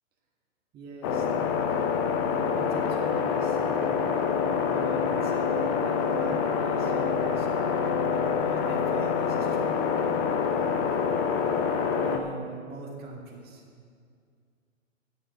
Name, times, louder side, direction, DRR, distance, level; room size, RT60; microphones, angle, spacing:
voice 1, 0.7-1.6 2.3-3.9 4.6-8.0 8.3-11.3 12.0-13.6, right 3 dB, 25° right, -1 dB, 2.1 m, -42 dB
sound 1, 1.0-12.2, left 6 dB, 15° left, 0.4 m, -26 dB
9.4 x 6.9 x 8.5 m, 2.2 s
hypercardioid pair, 125°, 39 cm